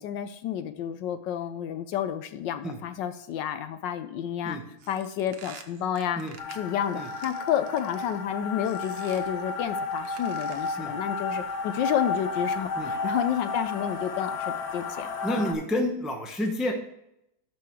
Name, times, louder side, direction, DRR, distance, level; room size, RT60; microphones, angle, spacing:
voice 1, 0.0-4.6 4.9-6.2 6.5-15.5, left 9 dB, 75° left, 10 dB, 1.2 m, -30 dB
sound 1, 4.8-8.2 8.6-9.4 9.9-10.9, right 7 dB, 80° right, 1.6 m, -49 dB
sound 2, 6.4-15.5, left 4 dB, 90° left, 1.9 m, -32 dB
voice 2, 15.2-16.7, left 1 dB, ahead, 3 dB, 0.6 m, -29 dB
11.5 x 4.8 x 4.6 m, 0.83 s
omnidirectional pair, 2.1 m